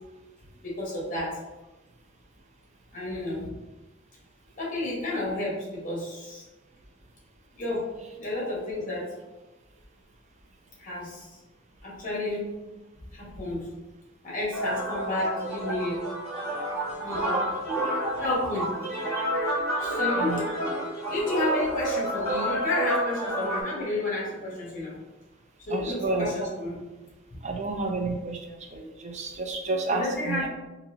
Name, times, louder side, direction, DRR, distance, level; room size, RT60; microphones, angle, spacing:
voice 1, 0.6-1.4 2.9-3.5 4.6-6.4 7.6-7.8 8.2-9.1 10.8-11.3 11.8-12.5 13.1-13.7 14.2-16.0 17.0-17.4 18.1-18.7 19.8-20.3 21.1-25.0 25.7-26.8 29.9-30.5, left 2 dB, 40° left, -5 dB, 1.3 m, -31 dB
sound 1, 14.5-23.6, right 1 dB, 15° left, 1.5 m, -29 dB
voice 2, 20.2-20.5 25.7-26.5 27.4-30.5, right 3 dB, 35° right, 3 dB, 0.5 m, -30 dB
4.0 x 2.7 x 2.8 m, 1.1 s
head